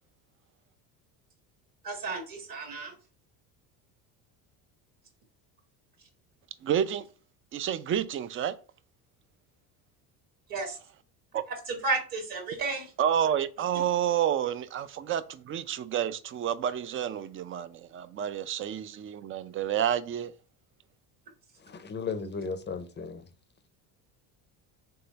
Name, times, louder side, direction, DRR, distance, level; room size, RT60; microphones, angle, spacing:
voice 1, 1.8-2.9 10.5-10.8 11.7-12.9, right 3 dB, 50° right, 1.8 m, -32 dB
voice 2, 6.6-7.1 7.5-8.6 11.3-11.4 13.0-20.3, right 9 dB, 30° right, 0.4 m, -29 dB
voice 3, 21.7-23.3, left 5 dB, 25° left, 0.6 m, -35 dB
3.6 x 3.4 x 4.0 m
supercardioid pair, 90°, 44 cm